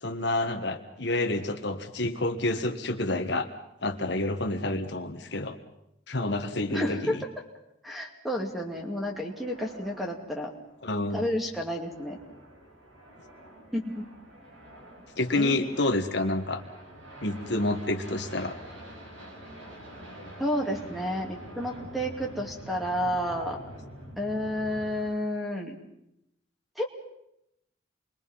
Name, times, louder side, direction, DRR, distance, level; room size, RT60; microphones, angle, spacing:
voice 1, 0.0-3.5 3.8-5.6 6.1-7.2 10.8-11.2 15.2-16.6 17.2-18.5, left 2 dB, 60° left, 5 dB, 1.5 m, -28 dB
voice 2, 6.7-7.3 7.8-10.5 11.1-12.2 13.7-14.1 15.3-15.8 20.4-23.6 24.2-25.8 26.8-26.9, equal, ahead, 2 dB, 2.5 m, -31 dB
sound 1, 8.3-25.1, equal, 85° right, 6.2 m, -47 dB
28.5 x 22.0 x 5.7 m, 0.81 s
head